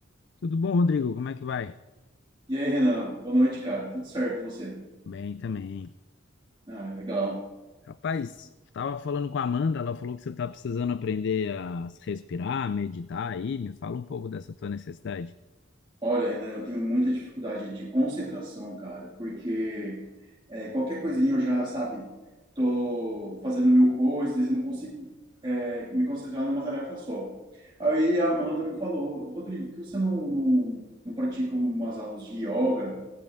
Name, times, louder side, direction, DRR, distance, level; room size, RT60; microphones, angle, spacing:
voice 1, 0.4-1.8 5.1-5.9 7.9-15.3, left 5 dB, 60° left, 14 dB, 0.4 m, -30 dB
voice 2, 2.5-4.8 6.7-7.4 16.0-20.0 20.5-22.1 22.6-25.1 25.4-33.0, right 1 dB, 25° right, -6 dB, 2.2 m, -27 dB
17.0 x 15.5 x 3.6 m, 1.2 s
head